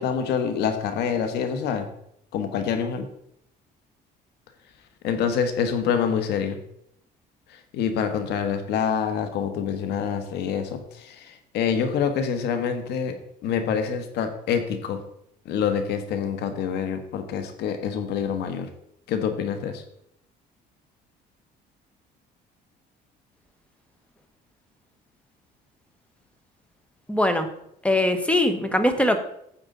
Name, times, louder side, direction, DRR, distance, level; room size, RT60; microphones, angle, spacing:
voice 1, 0.0-1.9 2.3-3.1 5.0-6.6 7.5-13.1 13.4-15.0 15.4-18.7 19.1-19.8, left 7 dB, 80° left, 8 dB, 1.4 m, -26 dB
voice 2, 27.1-27.5 27.8-29.2, left 1 dB, 5° left, 8 dB, 1.2 m, -21 dB
9.8 x 7.8 x 3.9 m, 0.73 s
cardioid pair, 110°, 17 cm